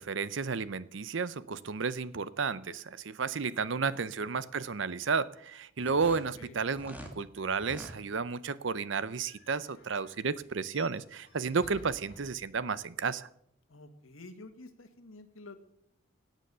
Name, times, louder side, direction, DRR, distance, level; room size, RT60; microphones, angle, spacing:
voice 1, 0.0-13.3, right 5 dB, 60° right, 17 dB, 0.6 m, -32 dB
sound 1, 5.8-7.2 7.5-8.0, equal, 10° right, 1.7 m, -46 dB
sound 2, 7.9-12.9, left 2 dB, 50° left, 6.0 m, -57 dB
voice 2, 13.7-15.6, left 2 dB, 85° left, 8 dB, 1.7 m, -50 dB
17.0 x 9.1 x 6.8 m, 0.73 s
head